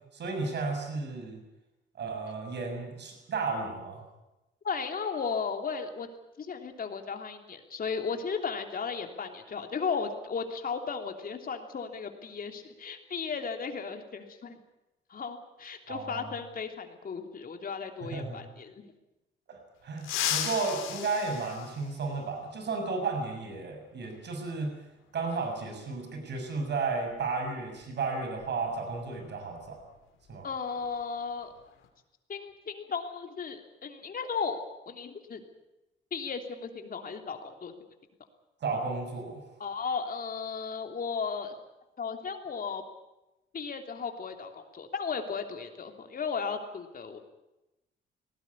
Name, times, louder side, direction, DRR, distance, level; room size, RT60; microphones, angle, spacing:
voice 1, 0.1-1.4 1.9-4.0 15.9-16.3 18.0-18.4 19.5-24.7 25.1-29.8 30.3-30.5 38.6-39.4, right 4 dB, 60° right, 4 dB, 6.7 m, -33 dB
voice 2, 4.6-6.1 6.4-14.6 15.1-18.9 30.4-31.5 32.3-34.6 34.9-35.4 36.1-37.7 39.6-41.5 42.0-42.8 43.5-47.2, left 5 dB, 45° left, 5 dB, 3.2 m, -35 dB
sound 1, 20.0-22.4 24.0-24.1 25.4-25.5 27.1-27.2 27.6-27.8 28.3-30.5 30.7-31.0 31.4-31.9, left 10 dB, 85° left, 3.3 m, -36 dB
19.5 x 18.0 x 9.9 m, 0.98 s
cardioid pair, 90°, 20 cm